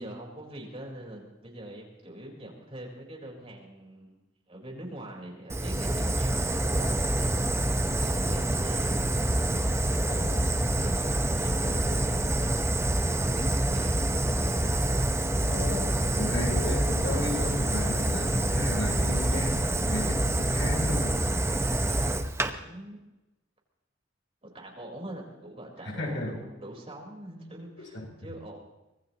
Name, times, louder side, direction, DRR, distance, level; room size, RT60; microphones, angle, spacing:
voice 1, 0.0-4.2 4.5-9.3 10.0-14.7 21.8-23.0 24.4-28.6, right 1 dB, 30° right, -1 dB, 4.2 m, -44 dB
Fire, 5.5-22.5, right 1 dB, 15° right, 0.9 m, -26 dB
voice 2, 10.0-10.4 15.4-21.2 25.8-26.4 27.9-28.1, left 2 dB, 75° left, -1 dB, 7.3 m, -34 dB
25.0 x 19.5 x 3.0 m, 0.97 s
head